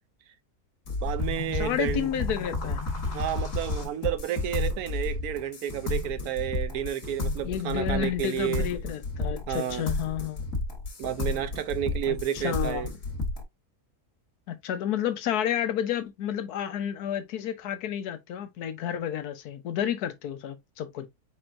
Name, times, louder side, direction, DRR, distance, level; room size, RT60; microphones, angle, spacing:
sound 1, 0.9-13.4, left 2 dB, 60° left, 1.7 m, -32 dB
voice 1, 1.0-2.1 3.1-8.7 9.5-9.8 11.0-12.9, right 11 dB, 75° right, 1.1 m, -31 dB
voice 2, 1.5-2.8 7.4-10.4 12.1-12.9 14.5-21.1, left 10 dB, 80° left, 1.3 m, -31 dB
4.5 x 4.3 x 2.5 m
omnidirectional pair, 1.6 m